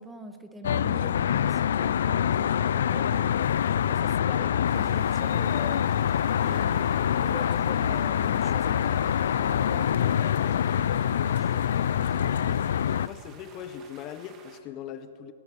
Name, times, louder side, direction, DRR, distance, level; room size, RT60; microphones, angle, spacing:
voice 1, 0.0-5.9 6.4-12.6, right 1 dB, 10° right, 0.8 m, -44 dB
Traffic noise roadway noise, 0.6-13.1, left 9 dB, 70° left, 0.3 m, -25 dB
sound 1, 4.6-14.6, right 5 dB, 25° right, 1.1 m, -52 dB
voice 2, 13.0-15.3, left 9 dB, 30° left, 0.6 m, -40 dB
18.5 x 8.5 x 6.7 m
hypercardioid pair, 145°, 0 cm